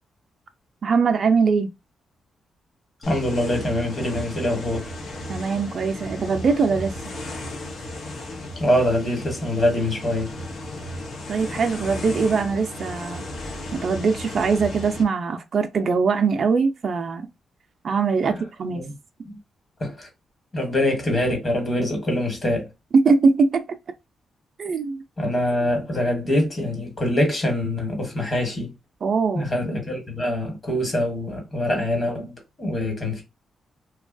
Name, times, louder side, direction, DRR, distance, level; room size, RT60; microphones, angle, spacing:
voice 1, 0.8-1.7 5.3-6.9 11.3-13.2 13.7-17.3 17.8-18.8 22.9-23.8 24.6-25.0 29.0-29.5, right 5 dB, 50° right, 0.4 m, -21 dB
sound 1, 3.0-15.0, left 1 dB, 65° left, 0.7 m, -35 dB
voice 2, 3.1-4.9 8.6-10.3 18.2-18.4 18.7-18.9 19.2-19.4 19.8-20.1 20.5-22.7 25.2-28.7 29.3-32.3 32.6-33.2, left 1 dB, 30° left, 1.2 m, -24 dB
2.8 x 2.3 x 2.4 m
cardioid pair, 125°, 0 cm